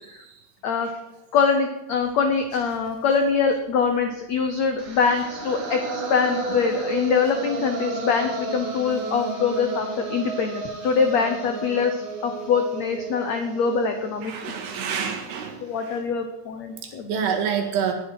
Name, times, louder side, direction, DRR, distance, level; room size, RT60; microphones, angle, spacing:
voice 1, 1.3-14.3 15.6-17.3, left 5 dB, 85° left, 6 dB, 1.5 m, -24 dB
sound 1, 4.8-14.9, right 2 dB, 40° right, 2.0 m, -32 dB
voice 2, 14.2-15.6 15.9-16.0 17.1-17.9, right 7 dB, 85° right, 3 dB, 4.0 m, -27 dB
18.5 x 10.0 x 4.8 m, 0.91 s
omnidirectional pair, 4.7 m